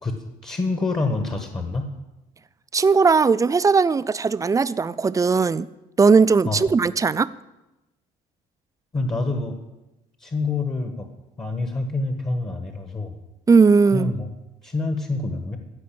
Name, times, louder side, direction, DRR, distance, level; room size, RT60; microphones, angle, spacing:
voice 1, 0.0-1.9 6.4-6.7 8.9-9.5 10.2-11.1 11.4-13.2 13.9-14.3 14.6-15.6, left 3 dB, 25° left, 5 dB, 1.4 m, -27 dB
voice 2, 2.7-5.7 6.0-7.3 13.5-14.1, right 4 dB, 20° right, 16 dB, 0.4 m, -18 dB
15.0 x 5.4 x 8.6 m, 1.0 s
cardioid pair, 110°, 17 cm